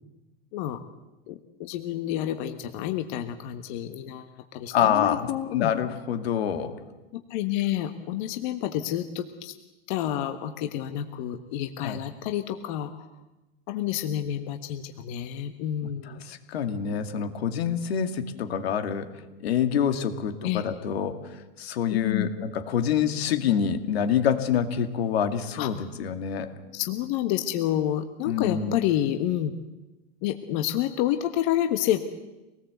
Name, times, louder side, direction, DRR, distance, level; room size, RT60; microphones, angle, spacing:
voice 1, 1.3-5.7 7.1-9.5 9.9-12.9 13.7-16.2 20.4-20.6 21.9-22.3 25.6-25.7 26.7-29.5 30.2-32.0, left 12 dB, 50° left, 7 dB, 1.5 m, -29 dB
voice 2, 4.7-5.3 5.5-6.8 11.8-12.0 16.2-26.5 28.3-28.8, left 8 dB, 80° left, 7 dB, 2.5 m, -26 dB
24.5 x 19.0 x 8.1 m, 1.0 s
supercardioid pair, 145°, 31 cm